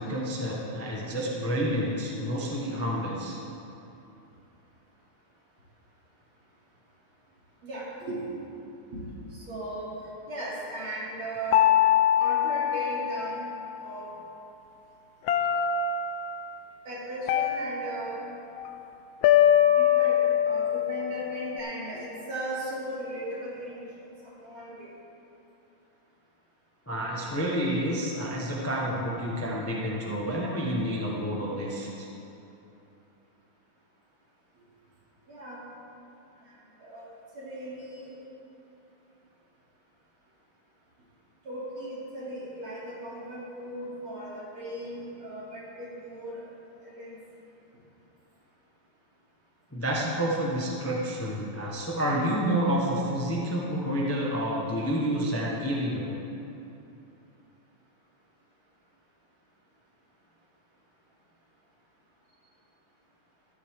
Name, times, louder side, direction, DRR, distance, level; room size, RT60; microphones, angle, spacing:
voice 1, 0.0-3.4 26.9-32.1 49.7-56.1, equal, 10° left, -4 dB, 0.7 m, -29 dB
voice 2, 7.6-8.2 8.9-9.0 9.3-9.9 10.3-11.7 12.2-13.4 13.8-14.1 16.9-18.2 19.8-23.9 24.4-24.9 35.3-35.6 36.8-37.1 37.4-38.1 41.5-46.4 46.8-47.1, right 1 dB, 70° right, -8 dB, 3.7 m, -37 dB
sound 1, 11.5-13.9 15.3-16.3 17.3-18.6 19.2-21.6, left 10 dB, 75° left, 1.3 m, -24 dB
13.5 x 11.0 x 3.7 m, 2.8 s
omnidirectional pair, 2.4 m